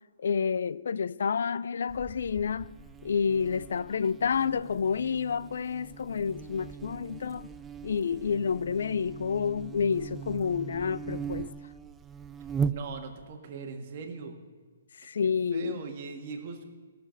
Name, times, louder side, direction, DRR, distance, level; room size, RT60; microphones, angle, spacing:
voice 1, 0.2-2.8 3.0-7.5 7.8-11.5 15.0-15.8, left 6 dB, 70° left, 0.4 m, -29 dB
Buzz, 1.9-13.3, right 6 dB, 10° right, 0.4 m, -39 dB
voice 2, 12.7-14.4 15.2-16.6, right 5 dB, 40° right, 1.7 m, -40 dB
16.5 x 6.8 x 6.4 m
hypercardioid pair, 160°, 0 cm